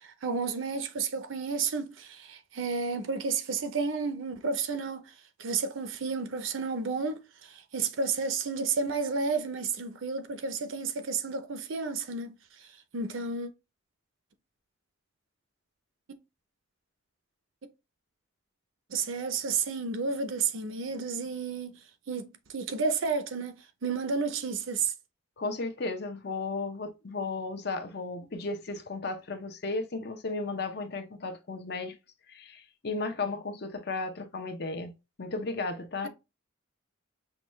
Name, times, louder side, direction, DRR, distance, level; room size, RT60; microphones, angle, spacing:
voice 1, 0.0-5.1 5.4-12.3 12.9-13.5 18.9-21.8 22.1-24.9, right 4 dB, 75° right, 0.6 m, -31 dB
voice 2, 25.4-31.9 32.3-36.1, left 3 dB, 55° left, 0.7 m, -34 dB
5.8 x 2.3 x 3.1 m
head